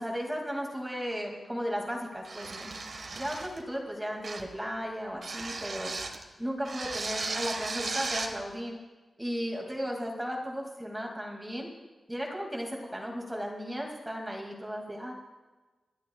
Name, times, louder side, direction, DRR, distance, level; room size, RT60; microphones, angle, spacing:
voice 1, 0.0-2.7 3.1-5.9 6.4-8.8 9.2-11.7 12.1-15.1, equal, 10° right, 0 dB, 2.2 m, -35 dB
sound 1, 2.2-3.6 4.2-4.6 5.2-6.2 6.6-8.4, right 3 dB, 55° right, 1.4 m, -36 dB
27.5 x 11.5 x 2.3 m, 1.2 s
wide cardioid pair, 140°, 0 cm